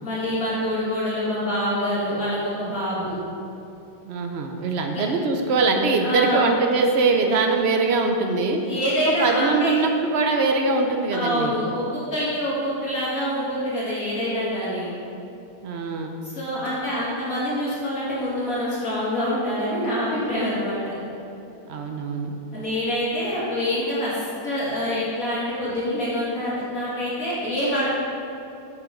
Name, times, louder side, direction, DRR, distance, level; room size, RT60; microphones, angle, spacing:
voice 1, 0.0-3.2 4.9-5.0 6.0-6.5 8.6-9.8 11.1-15.0 16.2-21.0 22.5-24.2 24.4-27.9, equal, 50° left, -8 dB, 2.3 m, -26 dB
voice 2, 4.1-8.6 9.2-11.5 15.6-16.2 21.7-22.4, right 3 dB, 70° right, 3 dB, 0.6 m, -22 dB
7.8 x 5.9 x 5.0 m, 2.8 s
omnidirectional pair, 1.9 m